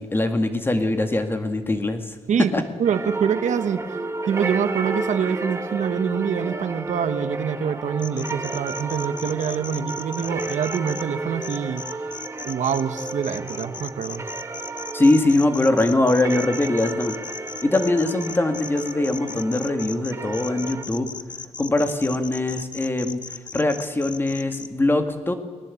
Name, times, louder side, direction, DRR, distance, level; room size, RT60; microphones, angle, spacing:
voice 1, 0.0-2.6 14.9-17.2 17.6-21.1 21.6-23.2 23.5-25.3, left 2 dB, 20° left, 7 dB, 2.0 m, -22 dB
voice 2, 2.8-3.9 4.3-11.8 12.4-14.3, right 7 dB, 80° right, 11 dB, 1.4 m, -25 dB
sound 1, 2.9-20.8, right 3 dB, 20° right, 1.6 m, -32 dB
sound 2, 8.0-11.0 11.4-24.7, left 5 dB, 35° left, 1.0 m, -37 dB
29.5 x 20.0 x 8.5 m, 1.5 s
wide cardioid pair, 170°, 12 cm